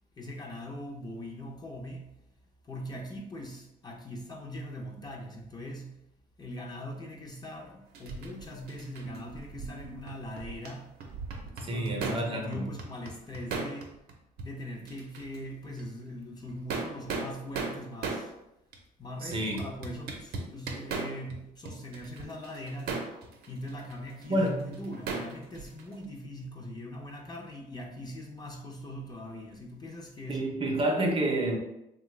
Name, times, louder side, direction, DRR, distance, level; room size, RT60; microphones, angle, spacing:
voice 1, 0.2-2.0 2.6-5.9 6.4-10.9 11.6-13.9 14.4-18.3 19.0-23.1 23.5-30.4, equal, 25° left, 0 dB, 0.5 m, -41 dB
sound 1, 7.9-10.7 11.0-12.3 12.5-14.1 14.4-14.5 14.9-15.4 15.8-15.9 16.5-18.3 18.7-18.8 19.3-21.4 21.7-26.0, right 4 dB, 70° right, 0.6 m, -37 dB
voice 2, 11.7-12.6 19.2-19.6 24.3-24.6 30.3-31.6, right 1 dB, 35° right, 2 dB, 0.6 m, -28 dB
3.1 x 2.2 x 3.2 m, 0.84 s
cardioid pair, 110°, 17 cm